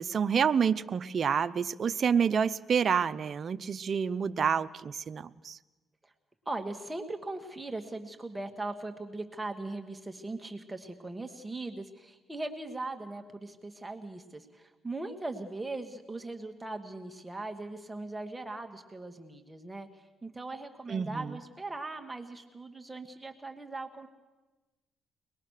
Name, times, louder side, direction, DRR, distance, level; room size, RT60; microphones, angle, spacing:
voice 1, 0.0-5.6 20.9-21.4, right 7 dB, 50° right, 11 dB, 0.6 m, -28 dB
voice 2, 6.5-19.9 20.2-24.1, right 2 dB, 15° right, 4 dB, 1.8 m, -39 dB
23.5 x 20.0 x 6.6 m, 1.2 s
cardioid pair, 90°, 0 cm